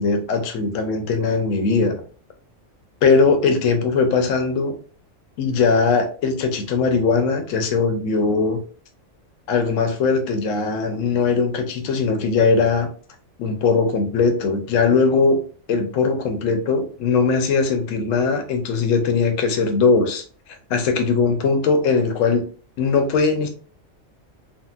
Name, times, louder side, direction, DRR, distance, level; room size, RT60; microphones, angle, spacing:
voice 1, 0.0-2.0 3.0-4.7 5.4-8.6 9.5-12.9 13.4-15.4 15.7-20.2 20.5-22.4 22.8-23.5, left 4 dB, 75° left, 6 dB, 1.0 m, -20 dB
3.7 x 2.1 x 2.3 m, 0.40 s
omnidirectional pair, 1.4 m